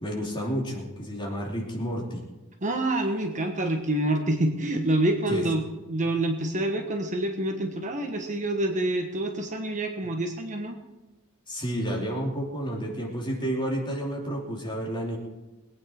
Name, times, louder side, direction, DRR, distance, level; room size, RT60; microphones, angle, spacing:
voice 1, 0.0-2.3 5.3-5.4 11.5-15.2, equal, 20° left, -2 dB, 3.0 m, -30 dB
voice 2, 2.6-10.8, right 1 dB, 35° right, 4 dB, 1.3 m, -27 dB
21.5 x 9.3 x 4.4 m, 1.1 s
head